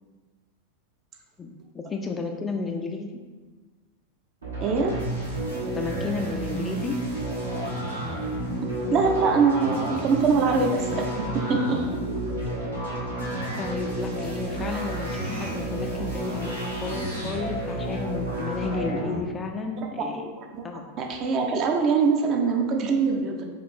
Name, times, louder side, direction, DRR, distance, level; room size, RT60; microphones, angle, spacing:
voice 1, 1.4-3.1 5.7-7.0 13.6-20.3 20.6-20.8, left 4 dB, 20° left, 3 dB, 0.4 m, -32 dB
sound 1, 4.4-19.2, right 1 dB, 75° right, 1.2 m, -31 dB
voice 2, 4.6-5.0 8.9-11.0 11.5-11.8 20.4-20.6 21.0-23.4, right 5 dB, 35° right, 2 dB, 0.5 m, -23 dB
4.9 x 2.5 x 3.6 m, 1.3 s
figure-of-eight pair, 90°, 0 cm